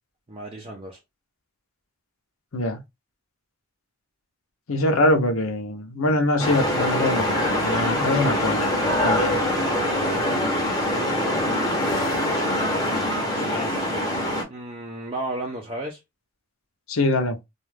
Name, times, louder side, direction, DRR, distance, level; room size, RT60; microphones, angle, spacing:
voice 1, 0.3-1.0 10.1-10.5 13.2-14.1 14.5-16.0, right 1 dB, 25° right, 0.5 m, -34 dB
voice 2, 4.7-9.4 16.9-17.4, left 1 dB, 75° left, 0.7 m, -23 dB
sound 1, 6.4-14.4, left 1 dB, 20° left, 0.8 m, -24 dB
2.4 x 2.3 x 3.2 m
head